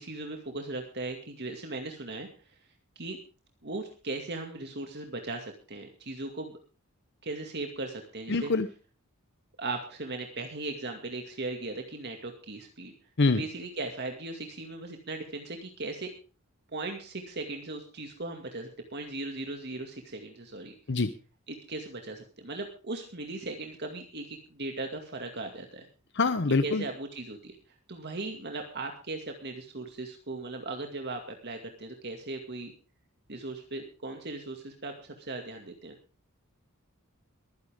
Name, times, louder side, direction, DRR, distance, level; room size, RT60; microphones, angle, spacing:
voice 1, 0.0-2.3 3.0-3.2 3.6-6.6 7.2-8.5 9.6-12.9 13.3-16.1 16.7-20.7 21.5-25.9 26.6-27.6 27.9-32.7 33.3-36.0, right 2 dB, 50° right, 4 dB, 2.2 m, -38 dB
voice 2, 8.3-8.7 13.2-13.4 20.9-21.1 26.1-26.8, left 3 dB, 55° left, 11 dB, 0.9 m, -24 dB
22.5 x 10.5 x 3.6 m, 0.35 s
head